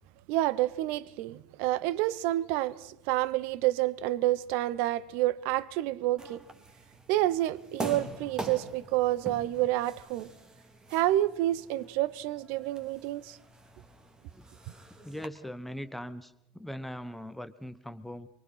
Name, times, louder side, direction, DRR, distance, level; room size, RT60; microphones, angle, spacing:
voice 1, 0.3-6.4 7.1-10.3 10.9-13.4, right 15 dB, 55° right, 0.9 m, -29 dB
sound 1, 6.2-15.3, right 2 dB, 20° right, 2.7 m, -44 dB
voice 2, 15.0-18.3, equal, 5° left, 1.1 m, -40 dB
24.5 x 23.5 x 5.7 m
figure-of-eight pair, 70°, 4 cm